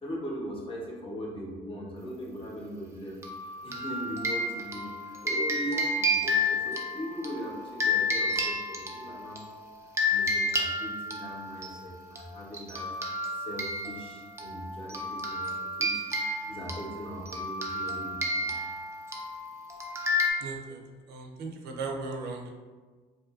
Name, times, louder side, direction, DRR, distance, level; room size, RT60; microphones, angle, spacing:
voice 1, 0.0-3.2 3.6-9.4 10.1-12.9 13.3-18.5 20.3-20.6, equal, 30° left, -3 dB, 0.7 m, -40 dB
sound 1, 3.2-9.4 10.0-11.7 12.2-12.3 12.5-20.3, left 1 dB, 15° right, 0.4 m, -31 dB
voice 2, 20.4-20.8 21.1-22.5, right 3 dB, 75° right, 2 dB, 0.4 m, -37 dB
2.6 x 2.4 x 2.4 m, 1.4 s
cardioid pair, 110°, 17 cm